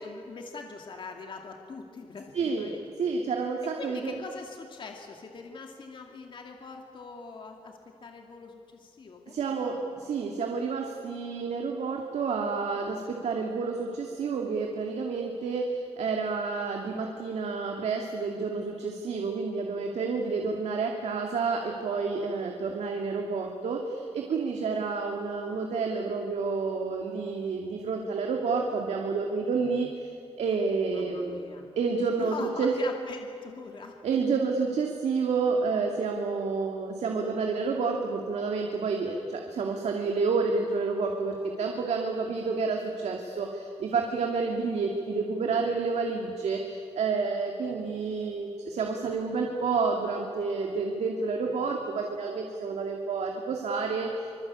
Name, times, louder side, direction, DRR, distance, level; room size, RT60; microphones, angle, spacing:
voice 1, 0.0-3.1 3.6-10.0 30.9-31.7 32.2-34.0, left 4 dB, 45° left, 2 dB, 2.4 m, -43 dB
voice 2, 2.3-2.7 3.0-4.1 9.3-31.4 31.8-32.7 34.0-54.4, right 4 dB, 90° right, 1 dB, 2.5 m, -29 dB
26.0 x 24.0 x 8.6 m, 2.5 s
wide cardioid pair, 170°, 11 cm